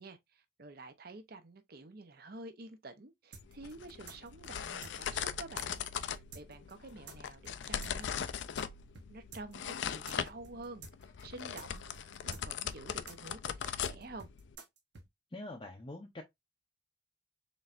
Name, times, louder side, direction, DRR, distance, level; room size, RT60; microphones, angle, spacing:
voice 1, 0.0-8.1 9.1-10.8 11.2-14.3, right 2 dB, 50° right, 0.7 m, -49 dB
sound 1, 3.3-8.7 8.9-9.1 9.3-15.1, right 4 dB, 70° right, 1.1 m, -51 dB
sound 2, 3.4-14.6, left 8 dB, 75° left, 0.4 m, -40 dB
voice 2, 15.3-16.2, left 2 dB, 25° left, 0.5 m, -44 dB
4.1 x 3.2 x 2.5 m
head